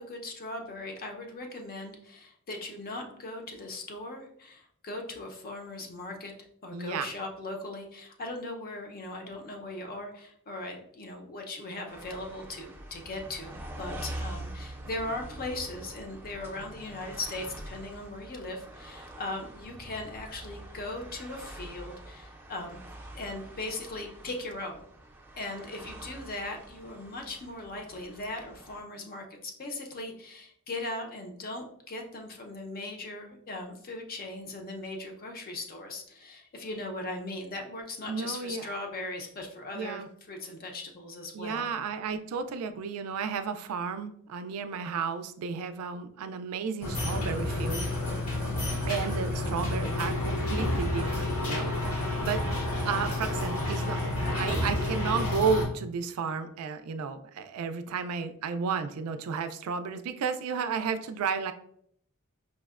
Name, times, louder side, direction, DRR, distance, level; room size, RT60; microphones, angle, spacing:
voice 1, 0.0-6.3 6.6-22.8 23.1-24.8 25.4-41.7, left 2 dB, 40° left, 3 dB, 0.6 m, -39 dB
voice 2, 6.7-7.1 38.1-38.7 39.7-40.1 41.3-47.9 48.9-52.5 52.8-61.5, right 6 dB, 75° right, 9 dB, 0.3 m, -33 dB
sound 1, 11.9-28.8, right 1 dB, 10° right, 0.5 m, -45 dB
sound 2, 46.8-55.6, left 1 dB, 80° left, 1.1 m, -30 dB
5.1 x 2.1 x 2.3 m, 0.66 s
head